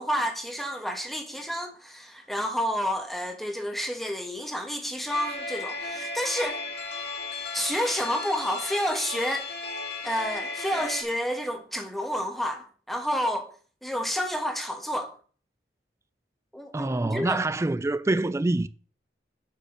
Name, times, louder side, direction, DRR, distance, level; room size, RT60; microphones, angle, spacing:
voice 1, 0.0-6.6 7.5-9.5 10.0-13.5 13.8-15.1 16.5-17.4, equal, ahead, 1.4 m, -30 dB
sound 1, 5.1-11.0, left 3 dB, 65° left, 2.2 m, -35 dB
voice 2, 16.7-18.7, right 2 dB, 15° right, 0.3 m, -26 dB
8.4 x 5.2 x 6.6 m
head